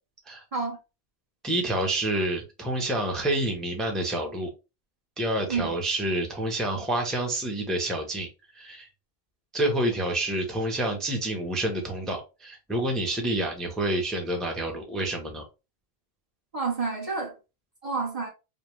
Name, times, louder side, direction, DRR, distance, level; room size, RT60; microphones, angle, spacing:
voice 1, 1.4-4.5 5.2-8.3 8.5-8.9 9.5-15.4, right 1 dB, ahead, 0.8 m, -28 dB
voice 2, 16.5-17.3 17.8-18.3, right 4 dB, 35° right, 1.0 m, -29 dB
5.2 x 2.1 x 3.1 m
omnidirectional pair, 1.1 m